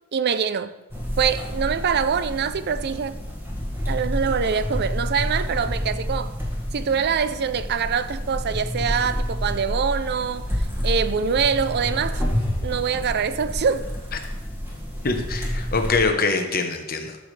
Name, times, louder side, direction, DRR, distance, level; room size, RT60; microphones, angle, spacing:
voice 1, 0.1-0.7 1.2-3.2 3.9-6.3 6.7-12.2 12.6-13.9, right 6 dB, 50° right, 0.5 m, -24 dB
sound 1, 0.9-16.0, equal, 10° right, 1.9 m, -29 dB
voice 2, 15.0-17.2, left 4 dB, 45° left, 1.0 m, -24 dB
13.0 x 6.8 x 3.3 m
head